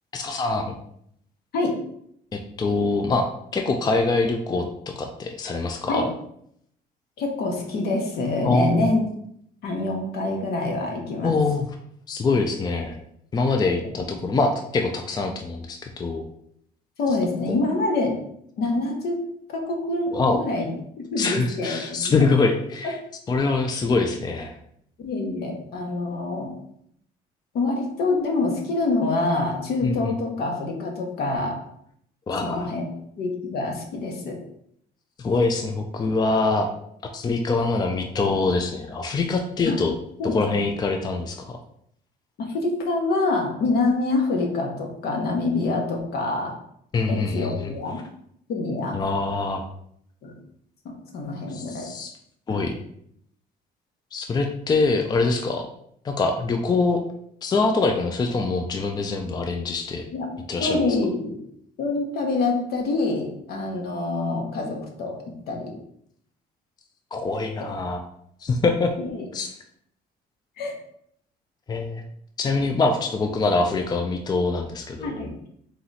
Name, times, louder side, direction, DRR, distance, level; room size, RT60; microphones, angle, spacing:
voice 1, 0.1-0.8 2.3-3.3 3.5-6.1 8.4-8.9 11.2-11.8 12.1-13.0 13.3-16.2 20.1-20.4 21.2-23.0 23.3-24.6 29.8-30.1 32.3-32.7 35.2-36.7 37.1-39.9 40.2-41.6 46.9-47.7 48.9-49.7 51.5-52.1 52.5-52.7 54.1-55.7 56.0-57.0 57.4-60.1 60.5-60.8 67.1-68.0 68.4-68.9 69.3-69.5 71.7-72.0 72.4-75.3, left 3 dB, 25° left, 4 dB, 0.4 m, -24 dB
voice 2, 7.2-9.0 9.6-11.3 17.0-18.2 18.6-19.2 19.5-20.7 21.0-22.1 25.0-26.5 27.5-31.6 32.4-32.8 33.2-34.4 39.6-39.8 40.2-40.4 42.5-46.5 47.1-48.0 48.5-49.0 50.2-50.4 51.1-51.9 52.5-52.7 60.1-60.3 60.6-61.4 61.8-65.2 65.5-65.8 69.0-69.3 70.6-70.7 75.0-75.5, left 3 dB, 70° left, 1 dB, 1.2 m, -26 dB
3.9 x 2.9 x 4.0 m, 0.70 s
cardioid pair, 110°, 17 cm